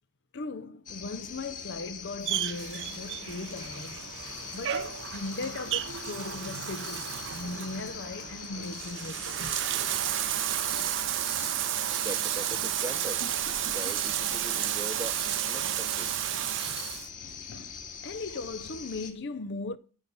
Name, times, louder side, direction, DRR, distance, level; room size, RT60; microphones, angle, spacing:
voice 1, 0.3-4.1 4.5-9.7 17.2-19.8, left 3 dB, 50° left, 0.6 m, -38 dB
sound 1, 0.9-19.1, left 6 dB, 35° left, 2.1 m, -42 dB
Bathtub (filling or washing), 2.2-17.1, right 12 dB, 55° right, 0.6 m, -32 dB
sound 2, 8.8-9.8 10.3-11.6 12.0-12.3 13.2-14.6, left 2 dB, 90° left, 2.5 m, -50 dB
voice 2, 12.0-13.2 13.7-15.2 15.5-16.1, right 1 dB, 15° right, 0.8 m, -40 dB
13.5 x 5.5 x 8.4 m
head